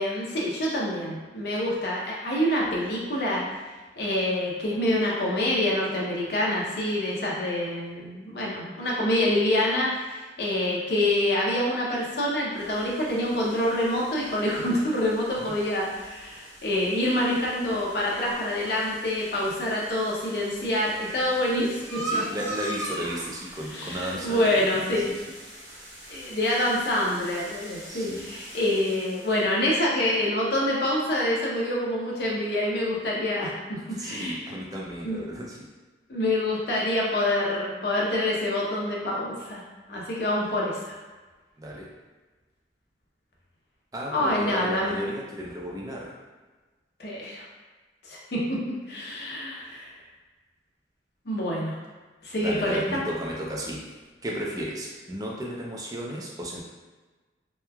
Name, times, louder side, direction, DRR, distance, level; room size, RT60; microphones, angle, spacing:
voice 1, 0.0-3.5 4.0-22.2 23.7-25.0 26.1-34.6 35.0-35.2 36.1-39.6 39.9-40.9 44.1-45.0 47.0-47.4 48.0-49.9 51.3-51.8 52.2-53.0, left 1 dB, 60° left, -4 dB, 0.6 m, -26 dB
sound 1, 12.5-29.5, right 1 dB, 75° right, 1.0 m, -41 dB
voice 2, 22.0-24.4 24.9-25.2 27.8-28.3 33.8-35.7 41.6-41.9 43.9-46.1 52.4-53.8 54.2-56.6, equal, 20° right, -2 dB, 0.4 m, -34 dB
3.0 x 2.3 x 2.2 m, 1.3 s
head